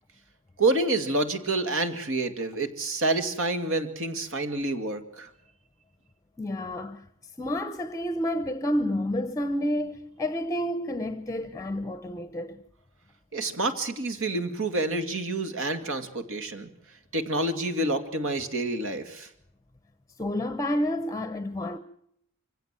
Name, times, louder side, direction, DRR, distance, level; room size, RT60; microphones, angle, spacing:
voice 1, 0.6-5.3 13.3-16.7 17.1-19.3, right 2 dB, 60° right, 2.4 m, -28 dB
voice 2, 6.4-7.0 7.4-12.6 20.2-21.8, left 1 dB, 15° left, 0.8 m, -29 dB
25.0 x 16.5 x 7.6 m
head